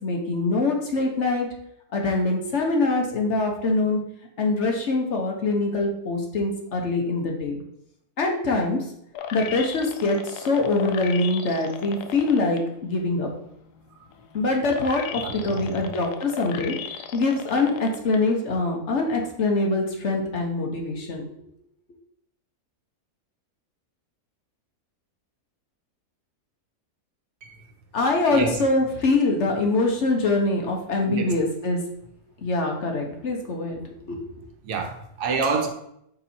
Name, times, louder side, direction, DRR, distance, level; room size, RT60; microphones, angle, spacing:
voice 1, 0.0-1.5 1.9-4.0 4.4-7.6 8.2-8.8 9.3-13.3 14.3-16.7 17.1-21.3 27.9-31.8 32.4-34.2, left 2 dB, 55° left, 1 dB, 1.1 m, -24 dB
sound 1, 9.1-12.6 13.1-18.2 18.6-18.7, left 8 dB, 80° left, 1.1 m, -36 dB
voice 2, 15.1-15.9 27.4-27.7 28.0-28.6 31.0-31.4 34.6-35.7, right 4 dB, 85° right, 4 dB, 1.4 m, -29 dB
5.5 x 4.1 x 4.2 m, 0.75 s
omnidirectional pair, 1.7 m